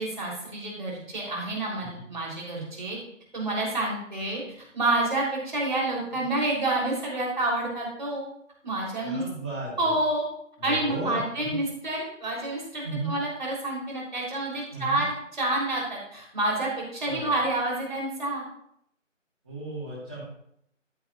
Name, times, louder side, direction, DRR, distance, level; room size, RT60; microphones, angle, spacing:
voice 1, 0.0-3.0 3.3-4.4 4.7-8.2 8.6-9.2 9.8-10.3 10.6-18.5, right 2 dB, 40° right, -3 dB, 3.7 m, -28 dB
voice 2, 9.0-9.9 10.6-11.6 12.8-13.1 14.7-15.0 17.0-17.2 19.4-20.2, right 2 dB, 5° right, -14 dB, 1.2 m, -35 dB
13.5 x 9.5 x 2.5 m, 0.73 s
figure-of-eight pair, 165°, 38 cm